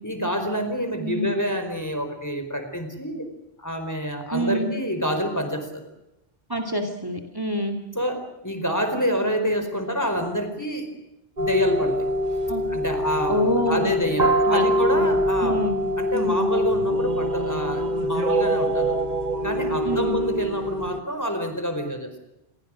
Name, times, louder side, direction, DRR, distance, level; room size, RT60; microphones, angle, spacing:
voice 1, 0.0-3.3 3.6-5.8 7.9-10.9 11.4-12.1 12.7-13.4 13.6-15.6 16.0-19.0 19.4-22.1, equal, 15° left, 7 dB, 4.6 m, -27 dB
voice 2, 4.3-4.7 6.5-7.8 12.5-12.6 13.3-14.0 14.5-15.9 16.1-16.5 19.8-20.2, equal, 20° right, 4 dB, 2.6 m, -27 dB
sound 1, 11.4-21.0, equal, 45° right, 1.5 m, -24 dB
28.0 x 23.0 x 6.5 m, 0.91 s
omnidirectional pair, 1.0 m